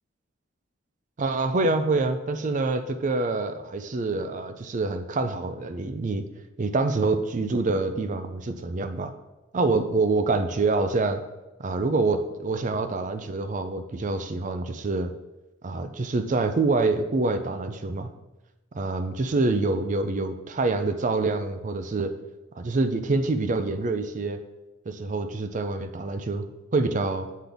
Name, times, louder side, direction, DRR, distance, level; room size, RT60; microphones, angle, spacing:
voice 1, 1.2-6.3 6.6-9.1 9.5-11.2 11.6-15.1 15.6-18.1 18.7-22.1 22.6-24.4 24.9-26.5 26.7-27.3, right 3 dB, 40° right, 9 dB, 0.4 m, -26 dB
7.4 x 3.9 x 3.4 m, 1.0 s
head